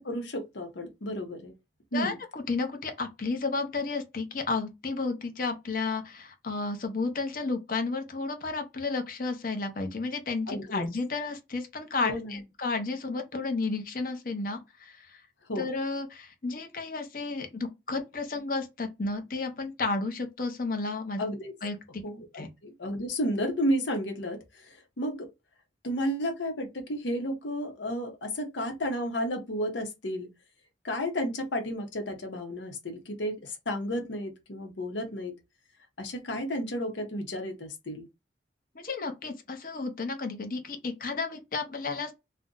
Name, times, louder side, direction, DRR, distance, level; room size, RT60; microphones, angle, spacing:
voice 1, 0.0-1.5 1.9-2.2 10.5-10.8 12.0-12.4 15.5-15.7 21.2-21.5 22.0-25.3 25.8-30.3 30.8-35.4 36.0-38.1, equal, 90° left, 0.8 m, -32 dB
voice 2, 1.9-15.2 15.6-21.2 21.6-22.0 22.3-22.5 38.7-42.1, left 3 dB, 50° left, 0.6 m, -32 dB
2.5 x 2.1 x 3.7 m
head